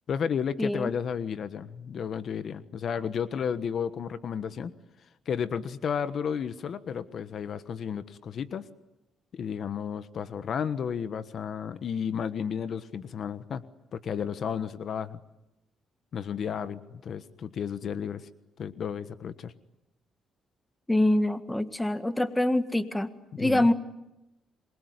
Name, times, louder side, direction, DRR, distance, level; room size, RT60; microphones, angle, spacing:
voice 1, 0.1-4.7 5.2-8.7 9.3-13.6 13.9-15.2 16.1-18.3 18.6-19.5 23.3-23.7, left 7 dB, 60° left, 13 dB, 1.3 m, -32 dB
voice 2, 0.6-0.9 20.9-23.1 23.4-23.7, left 1 dB, 10° left, 11 dB, 1.7 m, -25 dB
27.0 x 22.5 x 9.6 m, 0.90 s
cardioid pair, 90°, 0 cm